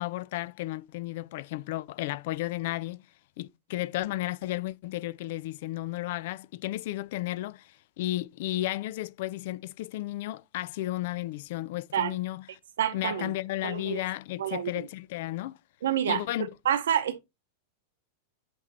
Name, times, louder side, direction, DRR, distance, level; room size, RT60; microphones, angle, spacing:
voice 1, 0.0-3.0 3.4-12.4 12.9-15.6 16.1-16.5, left 16 dB, 50° left, 0.3 m, -33 dB
voice 2, 12.8-13.3 13.6-14.0 14.4-14.9 15.8-17.2, right 9 dB, 60° right, 0.7 m, -28 dB
8.0 x 3.0 x 4.2 m
figure-of-eight pair, 90°, 0 cm